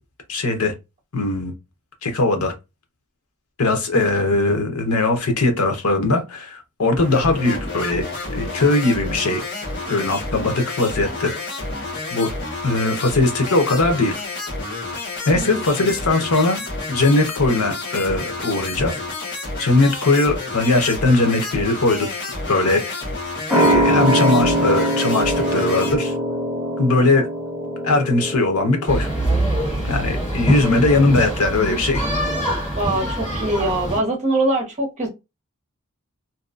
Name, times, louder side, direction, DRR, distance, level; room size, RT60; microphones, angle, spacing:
voice 1, 0.3-0.7 1.1-1.5 2.0-2.5 3.6-8.0 8.3-9.4 9.9-11.3 12.1-12.3 12.6-14.2 15.2-19.0 19.6-23.0 23.5-26.1 26.8-27.2 27.8-29.1 29.8-32.0, left 2 dB, 80° left, 0.8 m, -20 dB
sound 1, 6.9-26.0, left 2 dB, 55° left, 1.0 m, -30 dB
voice 2, 15.3-15.7 32.8-35.1, right 2 dB, 30° right, 0.9 m, -23 dB
sound 2, 23.5-30.6 30.9-31.0, equal, 5° right, 0.6 m, -22 dB
sound 3, 28.9-34.0, right 1 dB, 30° left, 1.6 m, -24 dB
2.8 x 2.2 x 2.4 m
head